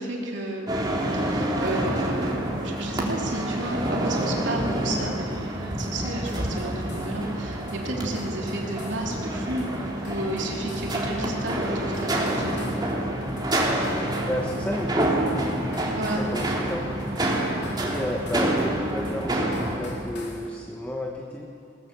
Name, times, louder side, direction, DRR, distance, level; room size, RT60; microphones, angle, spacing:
voice 1, 0.0-5.3 5.8-12.7 15.9-16.5, right 1 dB, 70° right, -1 dB, 3.3 m, -32 dB
sound 1, 0.7-19.8, right 1 dB, 25° right, 2.9 m, -28 dB
sound 2, 5.3-20.5, left 1 dB, 65° left, 3.7 m, -43 dB
voice 2, 14.3-15.3 16.1-16.8 17.8-21.5, left 1 dB, 10° left, 0 dB, 1.3 m, -32 dB
21.5 x 18.5 x 7.0 m, 2.5 s
head